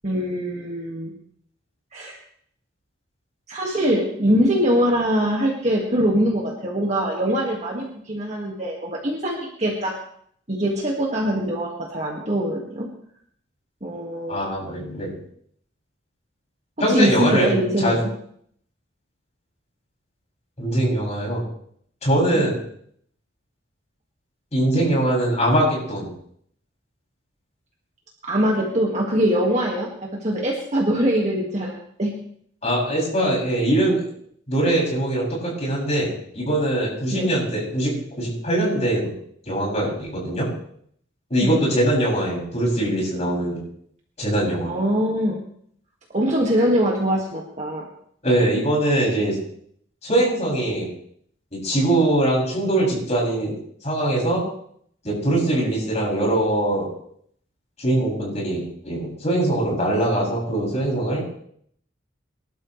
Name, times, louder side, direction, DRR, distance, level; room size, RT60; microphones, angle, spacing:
voice 1, 0.0-1.1 1.9-2.2 3.5-9.9 10.5-12.9 13.8-14.4 16.9-18.1 28.2-31.7 32.0-32.1 37.1-37.3 41.4-41.6 44.6-45.4 46.1-47.9, equal, 35° right, -2 dB, 2.0 m, -23 dB
voice 2, 14.3-15.2 16.8-18.0 20.6-21.4 22.0-22.6 24.5-26.1 32.6-34.0 34.5-39.1 39.5-40.5 41.3-43.6 44.2-44.7 48.2-49.4 50.0-50.9 51.5-53.5 53.8-54.4 55.0-56.9 57.8-61.2, right 1 dB, 35° left, -4 dB, 6.8 m, -22 dB
24.0 x 12.5 x 3.3 m, 0.65 s
head